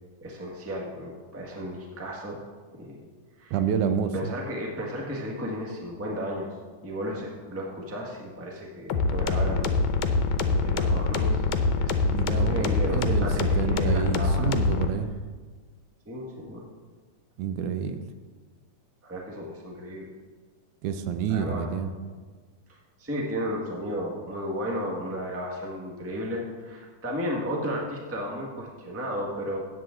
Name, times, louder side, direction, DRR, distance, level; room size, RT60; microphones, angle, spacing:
voice 1, 0.2-2.4 2.7-3.0 3.4-3.5 3.8-6.5 6.8-9.7 10.4-11.4 11.8-14.5 16.0-16.6 19.0-20.1 21.3-21.7 22.7-29.6, equal, 10° right, -1 dB, 0.6 m, -34 dB
voice 2, 3.5-4.1 12.0-15.1 17.4-18.0 20.8-21.9, right 7 dB, 90° right, 9 dB, 2.2 m, -28 dB
sound 1, 8.9-14.9, left 4 dB, 85° left, 2.2 m, -24 dB
14.0 x 9.0 x 3.8 m, 1.5 s
omnidirectional pair, 3.4 m